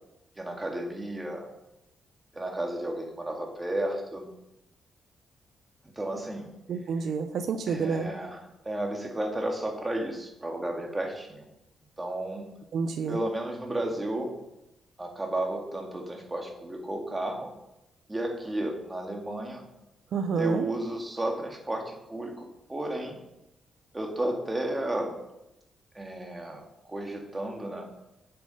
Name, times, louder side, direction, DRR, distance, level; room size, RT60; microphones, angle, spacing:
voice 1, 0.4-1.5 2.3-4.3 5.8-6.5 7.7-11.5 12.0-12.5 13.1-14.4 15.0-17.5 18.1-19.7 20.4-23.2 23.9-25.2 25.9-27.9, right 1 dB, 15° right, 1 dB, 1.9 m, -33 dB
voice 2, 6.7-8.1 12.7-13.2 20.1-20.6, right 5 dB, 70° right, 8 dB, 0.7 m, -28 dB
8.7 x 6.9 x 5.5 m, 0.89 s
cardioid pair, 130°, 0 cm